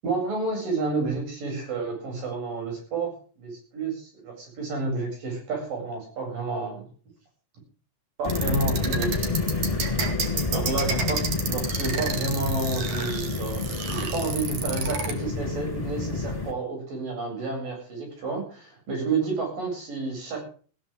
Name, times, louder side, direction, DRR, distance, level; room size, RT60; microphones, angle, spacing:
voice 1, 0.0-6.9 8.2-9.3 10.5-20.4, right 3 dB, 85° right, 1 dB, 9.6 m, -30 dB
sound 1, 8.2-16.5, left 3 dB, 10° left, 2.7 m, -29 dB
sound 2, 8.2-15.1, right 5 dB, 60° right, 3.6 m, -31 dB
20.0 x 15.0 x 3.8 m, 0.42 s
omnidirectional pair, 3.8 m